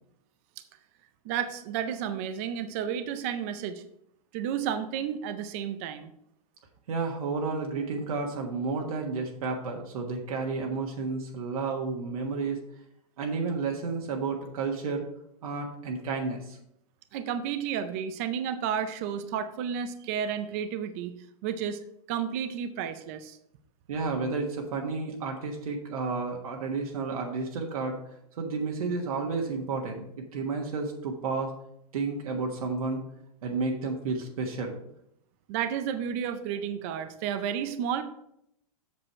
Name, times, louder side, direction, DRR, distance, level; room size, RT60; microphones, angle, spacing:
voice 1, 1.2-3.8 4.3-6.1 17.1-21.1 21.4-21.8 22.1-23.4 35.5-38.0, right 8 dB, 25° right, 10 dB, 0.4 m, -32 dB
voice 2, 6.9-12.6 13.2-15.0 15.4-16.6 23.9-28.0 28.4-31.5 31.9-33.0 33.4-34.8, right 4 dB, 65° right, 0 dB, 1.4 m, -31 dB
7.6 x 6.3 x 4.3 m, 0.75 s
supercardioid pair, 170°, 20 cm